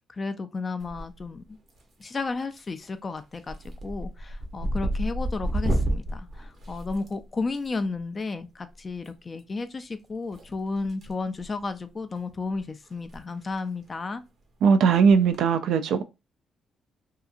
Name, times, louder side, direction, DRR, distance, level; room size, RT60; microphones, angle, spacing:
voice 1, 0.1-1.4 2.0-3.6 3.8-14.2, left 3 dB, 30° left, 0.4 m, -33 dB
sound 1, 0.8-1.4 1.7-2.2 2.6-2.8 3.2-7.6 8.9-9.1 10.3-11.1 11.4-11.6 12.2-12.3 12.5-12.6 13.0-13.2 13.4-13.5 15.1-15.4, right 1 dB, 50° right, 0.8 m, -30 dB
voice 2, 14.6-16.0, right 6 dB, 75° right, 0.3 m, -19 dB
2.8 x 2.4 x 2.4 m
cardioid pair, 90°, 0 cm